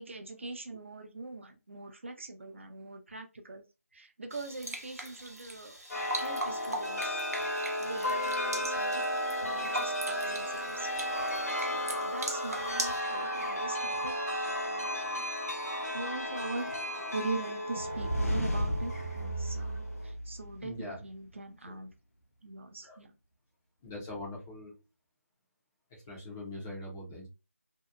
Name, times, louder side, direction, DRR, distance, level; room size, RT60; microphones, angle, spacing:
voice 1, 0.0-3.6 3.9-5.8 6.2-7.2 7.8-9.0 9.4-10.9 11.6-14.2 14.4-15.3 15.9-16.8 17.1-21.9 22.4-23.1, right 3 dB, 55° right, 6 dB, 0.6 m, -42 dB
sound 1, 4.3-13.0, right 1 dB, 90° right, 0.8 m, -41 dB
Chime, 5.9-20.1, left 1 dB, 90° left, 1.0 m, -34 dB
sound 2, 17.8-20.8, equal, 65° left, 0.7 m, -33 dB
voice 2, 20.6-21.0 21.7-21.8 22.8-23.0 23.8-24.7 25.9-27.3, left 1 dB, 10° left, -4 dB, 0.5 m, -42 dB
2.7 x 2.1 x 2.3 m, 0.27 s
figure-of-eight pair, 165°, 8 cm